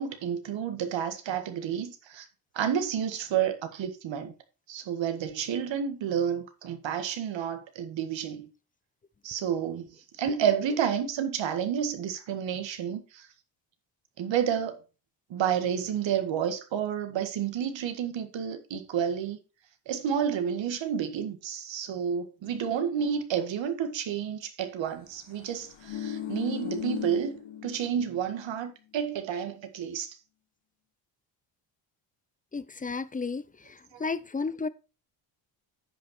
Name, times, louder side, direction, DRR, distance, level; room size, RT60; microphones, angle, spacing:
voice 1, 0.0-2.2 2.5-4.3 4.7-8.5 9.2-9.9 10.2-13.3 14.2-14.8 15.3-19.4 19.9-27.3 27.6-30.2, right 8 dB, 70° right, 1.8 m, -30 dB
sound 1, 25.5-28.2 28.5-28.6, left 9 dB, 65° left, 1.3 m, -36 dB
voice 2, 32.5-33.4 34.0-34.7, left 4 dB, 15° left, 0.7 m, -32 dB
9.9 x 5.5 x 4.4 m
cardioid pair, 80°, 47 cm